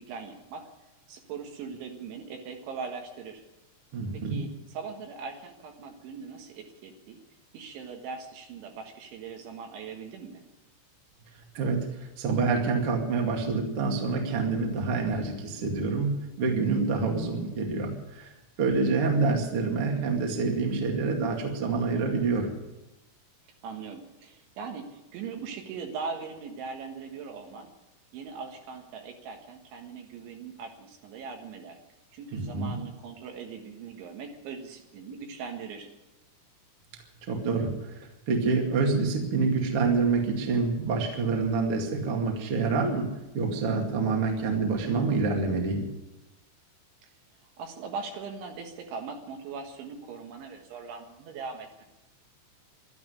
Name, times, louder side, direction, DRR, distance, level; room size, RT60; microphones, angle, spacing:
voice 1, 0.1-0.7 1.1-3.4 4.1-7.2 7.5-10.4 18.8-19.2 23.6-27.7 28.1-31.8 32.1-35.9 47.0-47.1 47.6-51.8, right 5 dB, 70° right, 3 dB, 3.8 m, -40 dB
voice 2, 3.9-4.4 11.5-16.1 16.4-18.3 18.6-22.5 32.3-32.7 37.2-43.1 43.3-45.8, right 4 dB, 45° right, 1 dB, 2.1 m, -27 dB
12.5 x 12.5 x 9.5 m, 1.0 s
omnidirectional pair, 5.8 m